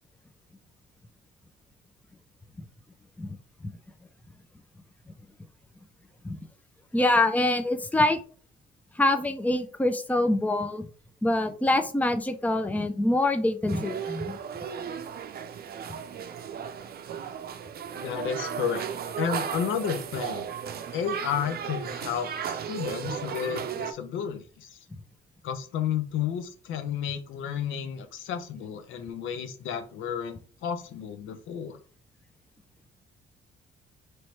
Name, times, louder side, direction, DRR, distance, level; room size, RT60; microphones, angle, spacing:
voice 1, 6.9-8.2 9.0-10.8 11.2-14.4, left 2 dB, 10° left, 8 dB, 0.6 m, -25 dB
sound 1, 13.7-23.9, right 7 dB, 50° right, 0.6 m, -35 dB
voice 2, 18.0-18.9 19.2-20.5 20.9-24.8 25.4-31.8, left 8 dB, 85° left, 9 dB, 0.7 m, -32 dB
3.1 x 3.0 x 4.5 m, 0.40 s
cardioid pair, 90°, 20 cm